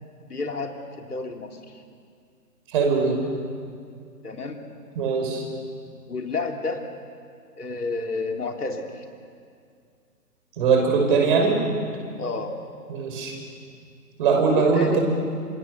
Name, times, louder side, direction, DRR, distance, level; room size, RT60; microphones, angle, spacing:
voice 1, 0.3-1.8 4.2-4.6 6.1-6.9 7.6-9.1 12.2-12.5 14.5-15.0, left 3 dB, 70° left, 3 dB, 3.4 m, -30 dB
voice 2, 2.7-3.2 5.0-5.4 10.6-11.6 12.9-13.3 14.2-15.0, right 5 dB, 30° right, 2 dB, 5.8 m, -21 dB
28.5 x 27.0 x 7.0 m, 2.3 s
figure-of-eight pair, 135°, 48 cm